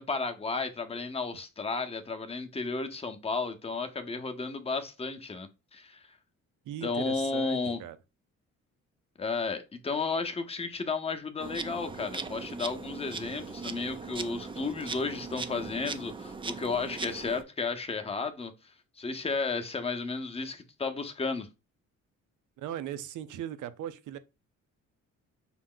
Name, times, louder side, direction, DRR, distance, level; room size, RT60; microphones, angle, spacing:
voice 1, 0.0-6.1 6.8-7.8 9.2-21.5, left 4 dB, 20° left, 0.7 m, -33 dB
voice 2, 6.7-8.0 22.6-24.2, right 10 dB, 80° right, 0.6 m, -38 dB
Insect, 11.4-17.4, right 4 dB, 15° right, 0.4 m, -39 dB
5.8 x 2.1 x 3.7 m
cardioid pair, 90°, 30 cm